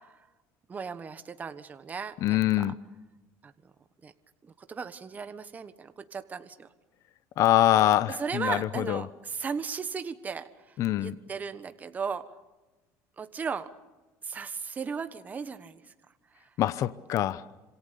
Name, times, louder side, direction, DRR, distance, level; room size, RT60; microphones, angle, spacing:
voice 1, 0.7-2.7 3.4-3.5 4.0-4.1 4.4-6.7 8.2-10.5 11.0-12.2 13.2-13.7 14.2-15.8, right 5 dB, 20° right, 10 dB, 1.3 m, -36 dB
voice 2, 2.2-2.8 7.4-9.0 10.8-11.1 16.6-17.4, left 13 dB, 50° left, 16 dB, 0.8 m, -24 dB
27.5 x 27.0 x 6.9 m, 1.1 s
cardioid pair, 140°, 7 cm